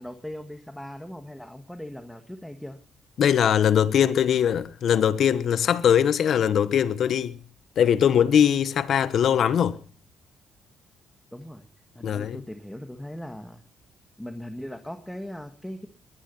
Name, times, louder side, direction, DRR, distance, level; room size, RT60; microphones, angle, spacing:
voice 1, 0.0-2.8 11.3-11.6 11.9-13.6 14.2-15.9, left 1 dB, 5° left, 1.7 m, -39 dB
voice 2, 3.2-7.4 7.8-9.8 12.0-12.4, left 9 dB, 65° left, 1.3 m, -21 dB
21.0 x 10.0 x 5.6 m
cardioid pair, 90°, 0 cm